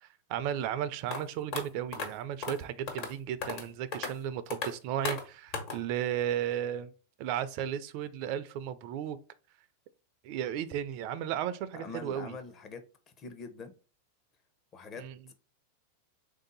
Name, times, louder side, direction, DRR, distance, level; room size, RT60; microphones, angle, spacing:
voice 1, 0.0-6.9 7.2-9.2 10.2-12.4 15.0-15.2, right 10 dB, 55° right, 0.4 m, -34 dB
sound 1, 1.1-1.2 1.5-1.6 1.9-2.1 2.4-2.6 2.9-3.1 3.4-3.7 3.9-4.1 4.5-4.7 5.1-5.2 5.5-5.8, left 4 dB, 50° left, 1.3 m, -34 dB
voice 2, 11.7-12.8 13.2-13.7 14.7-15.3, left 4 dB, 35° left, 0.8 m, -44 dB
3.7 x 2.7 x 3.9 m
hypercardioid pair, 120°, 0 cm